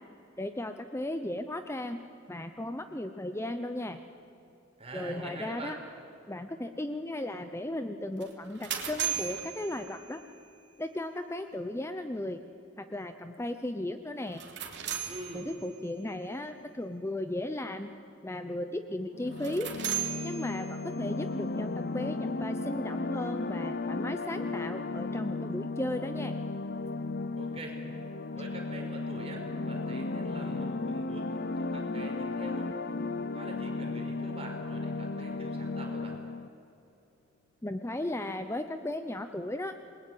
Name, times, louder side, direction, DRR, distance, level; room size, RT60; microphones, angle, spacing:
voice 1, 0.4-2.0 2.3-4.0 4.9-5.8 6.3-10.2 10.8-12.4 12.8-14.4 15.3-17.9 18.2-19.7 20.2-26.3 37.6-39.7, left 1 dB, 15° left, 8 dB, 0.8 m, -36 dB
voice 2, 4.8-5.7 15.1-15.5 27.4-27.8 28.3-32.7 33.3-36.2, right 1 dB, 30° right, 0 dB, 5.6 m, -44 dB
sound 1, 8.2-10.4 14.2-15.9 19.3-21.1, right 10 dB, 60° right, 3.1 m, -37 dB
sound 2, 19.1-36.5, left 3 dB, 55° left, 0.8 m, -35 dB
27.5 x 21.0 x 9.4 m, 2.8 s
head